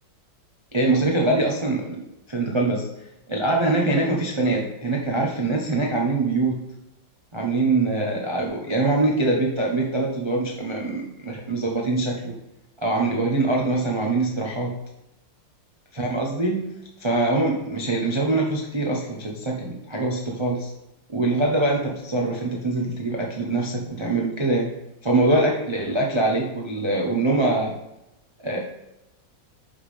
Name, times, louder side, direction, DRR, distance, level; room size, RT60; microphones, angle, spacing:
voice 1, 0.7-2.9 3.3-6.6 7.3-12.3 12.8-14.8 15.9-16.6 17.0-20.7 21.1-24.7 25.0-27.7 28.4-28.6, right 2 dB, 35° right, -1 dB, 0.4 m, -23 dB
7.1 x 3.7 x 5.0 m, 0.89 s
omnidirectional pair, 2.1 m